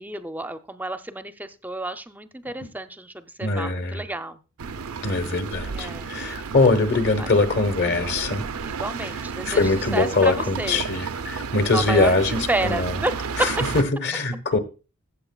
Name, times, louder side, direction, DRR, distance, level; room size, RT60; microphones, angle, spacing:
voice 1, 0.0-4.4 5.7-6.5 7.2-7.3 8.6-10.8 11.7-13.1, right 2 dB, 10° right, 0.5 m, -31 dB
voice 2, 3.4-4.0 5.0-8.5 9.0-9.1 9.4-13.0 13.4-14.6, left 3 dB, 55° left, 1.1 m, -22 dB
sound 1, 4.6-13.8, right 5 dB, 80° right, 0.5 m, -32 dB
14.5 x 7.6 x 2.3 m
head